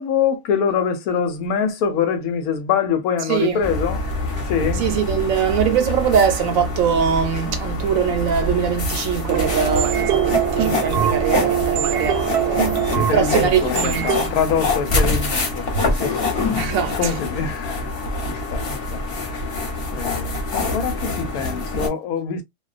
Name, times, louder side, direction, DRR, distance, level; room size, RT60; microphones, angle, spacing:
voice 1, 0.0-4.1 4.5-4.8 12.9-15.6 16.0-16.2 17.0-17.8 18.3-19.0 19.9-22.4, left 7 dB, 75° left, 1.0 m, -24 dB
voice 2, 3.3-3.6 4.7-12.8 13.1-14.4 15.7-17.2, right 7 dB, 70° right, 0.9 m, -22 dB
sound 1, 3.6-21.9, left 2 dB, 45° left, 0.9 m, -25 dB
sound 2, 9.3-14.3, right 9 dB, 85° right, 1.1 m, -22 dB
2.4 x 2.2 x 2.3 m
omnidirectional pair, 1.6 m